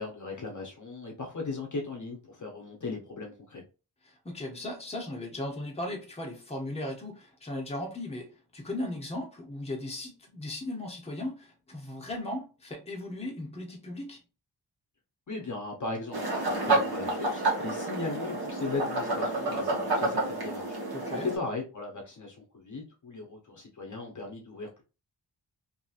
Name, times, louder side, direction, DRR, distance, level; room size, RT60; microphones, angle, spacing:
voice 1, 0.0-3.6 15.3-20.8 21.2-24.8, left 3 dB, 45° left, 0.7 m, -37 dB
voice 2, 4.0-14.2 20.9-21.3, left 1 dB, 15° left, 0.8 m, -37 dB
sound 1, 16.1-21.4, right 2 dB, 60° right, 1.2 m, -29 dB
2.8 x 2.6 x 2.3 m
wide cardioid pair, 150°, 41 cm